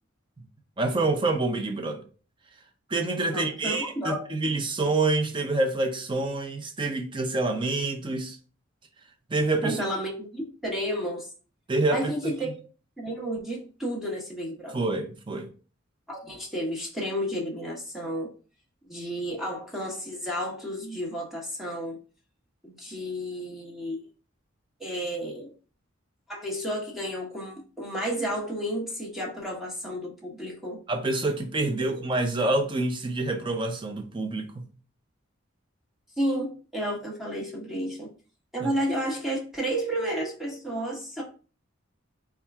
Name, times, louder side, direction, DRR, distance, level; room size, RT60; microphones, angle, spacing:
voice 1, 0.8-2.0 2.9-8.4 9.3-9.8 11.7-12.1 14.7-15.5 30.9-34.7 38.6-38.7, right 2 dB, 25° right, 0.5 m, -27 dB
voice 2, 3.3-4.3 9.6-11.3 11.9-12.5 13.0-14.8 16.1-18.3 18.8-22.0 22.6-24.0 24.8-25.5 26.3-30.8 31.8-32.0 36.2-38.1 38.5-41.2, equal, ahead, 0.9 m, -32 dB
4.3 x 2.4 x 3.4 m
head